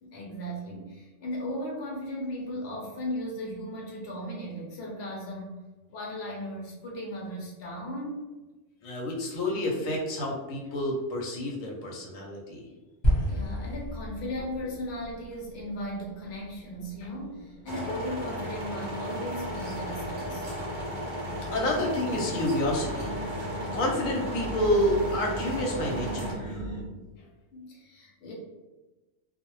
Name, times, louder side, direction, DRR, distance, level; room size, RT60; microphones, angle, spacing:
voice 1, 0.0-5.6 5.9-8.2 13.3-20.5 27.5-28.3, equal, 60° left, -2 dB, 0.9 m, -36 dB
voice 2, 8.8-12.7 21.5-23.2 23.7-26.7, left 1 dB, 85° left, -1 dB, 1.0 m, -29 dB
sound 1, 13.0-17.4, equal, 30° left, 0.6 m, -31 dB
sound 2, 14.3-26.8, right 1 dB, 5° right, 0.9 m, -41 dB
sound 3, 17.7-26.3, equal, 45° right, 0.8 m, -35 dB
2.2 x 2.0 x 2.9 m, 1.2 s
omnidirectional pair, 1.3 m